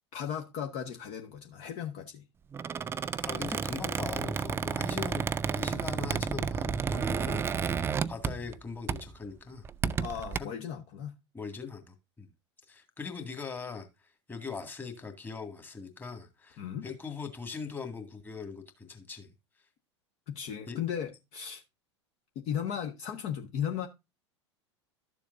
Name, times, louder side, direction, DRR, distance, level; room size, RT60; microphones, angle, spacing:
voice 1, 0.1-2.2 10.0-11.1 16.6-16.9 20.3-21.6 22.3-23.9, left 8 dB, 45° left, 1.3 m, -36 dB
Squeak, 2.5-8.6 8.9-9.2 9.6-10.4, right 6 dB, 15° right, 0.4 m, -32 dB
voice 2, 3.2-5.3 5.5-9.6 10.4-10.5 11.3-12.3 12.7-13.9 14.3-19.3 20.7-20.8, left 5 dB, 15° left, 2.0 m, -41 dB
12.5 x 7.2 x 2.6 m
figure-of-eight pair, 85°, 15 cm